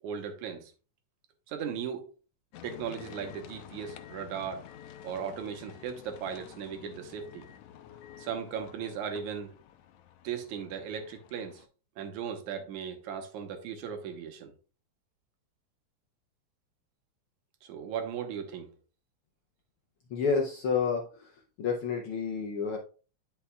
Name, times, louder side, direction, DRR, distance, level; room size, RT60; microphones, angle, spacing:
voice 1, 0.0-0.7 1.5-2.1 2.6-4.6 5.0-7.5 8.2-9.6 10.2-11.6 12.0-14.5 17.6-18.7, right 7 dB, 85° right, 2.5 m, -37 dB
sound 1, 2.5-11.7, left 10 dB, 90° left, 2.0 m, -50 dB
voice 2, 20.1-21.3 21.6-22.8, left 5 dB, 70° left, 1.3 m, -29 dB
10.0 x 5.6 x 2.3 m
omnidirectional pair, 3.4 m